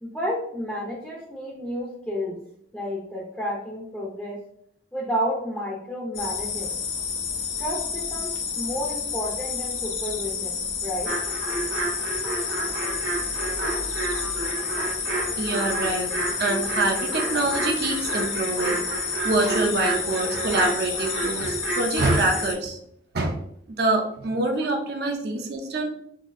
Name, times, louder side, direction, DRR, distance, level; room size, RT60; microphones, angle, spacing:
voice 1, 0.0-2.4 2.7-4.4 4.9-6.8 7.6-11.2, equal, 10° left, -4 dB, 0.5 m, -31 dB
sound 1, 6.1-22.5, left 6 dB, 85° left, 0.6 m, -30 dB
sound 2, 11.1-22.4, right 3 dB, 85° right, 1.3 m, -30 dB
voice 2, 15.1-16.1 16.4-22.8 23.1-23.4 23.7-25.9, right 2 dB, 55° right, 2 dB, 0.5 m, -26 dB
4.0 x 2.6 x 2.5 m, 0.69 s
head